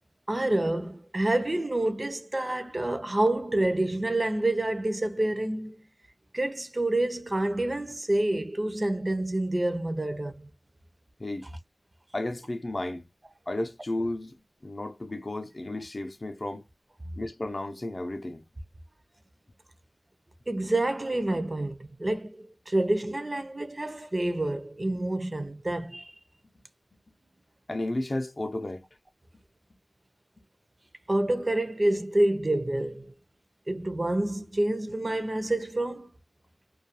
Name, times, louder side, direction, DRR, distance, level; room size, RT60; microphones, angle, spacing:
voice 1, 0.3-5.8 6.3-10.5 20.5-26.1 31.1-33.1 33.7-36.1, right 1 dB, 35° right, 0.5 m, -28 dB
voice 2, 12.1-13.0 13.5-14.4 14.6-16.6 17.2-18.4 27.7-28.8, left 1 dB, 45° left, 0.5 m, -33 dB
2.3 x 2.3 x 2.9 m
wide cardioid pair, 55°, 0 cm